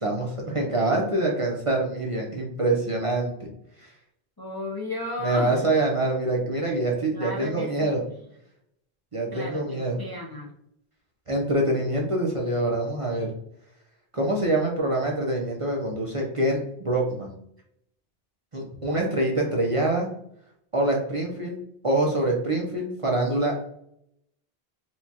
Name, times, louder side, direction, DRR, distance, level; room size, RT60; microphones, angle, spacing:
voice 1, 0.0-3.5 3.8-3.9 5.2-8.0 9.1-10.0 11.3-13.3 14.1-17.4 18.5-20.1 20.7-23.6, right 2 dB, 35° right, -2 dB, 0.7 m, -25 dB
voice 2, 4.4-5.6 7.1-7.9 9.3-10.5, left 2 dB, 25° left, -3 dB, 0.6 m, -34 dB
4.4 x 2.4 x 2.8 m, 0.71 s
omnidirectional pair, 1.0 m